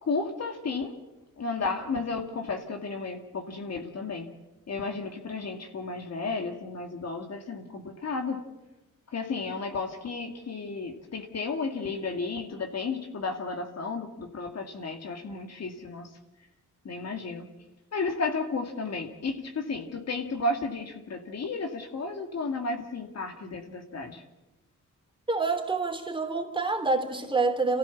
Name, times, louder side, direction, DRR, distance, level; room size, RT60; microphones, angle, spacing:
voice 1, 0.0-0.9 1.4-4.3 4.7-8.4 9.1-16.1 16.8-17.5 17.9-24.2, left 3 dB, 55° left, 5 dB, 2.4 m, -33 dB
voice 2, 25.3-27.8, right 3 dB, 15° right, 3 dB, 3.4 m, -27 dB
28.0 x 15.5 x 7.3 m, 1.0 s
cardioid pair, 110°, 32 cm